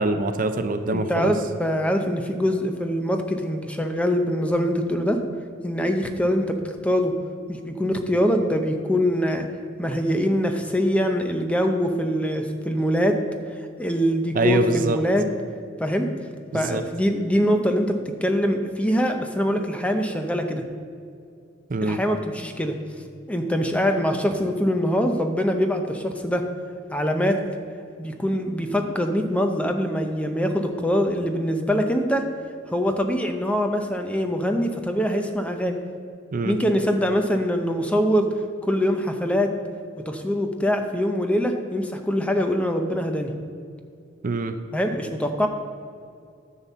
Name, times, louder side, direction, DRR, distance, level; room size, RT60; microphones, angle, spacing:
voice 1, 0.0-1.3 14.3-15.0 16.5-16.8 21.7-22.0 36.3-36.6 44.2-44.5, right 3 dB, 45° right, 8 dB, 0.5 m, -24 dB
voice 2, 0.9-5.2 5.6-7.2 7.5-9.4 9.8-13.2 13.8-15.3 15.8-16.1 16.5-20.6 21.8-22.8 23.3-26.5 26.9-27.4 28.0-32.3 32.7-35.8 36.4-38.3 38.6-39.5 40.1-43.3 44.7-45.5, equal, 5° left, 5 dB, 0.6 m, -23 dB
10.0 x 4.2 x 7.2 m, 2.3 s
head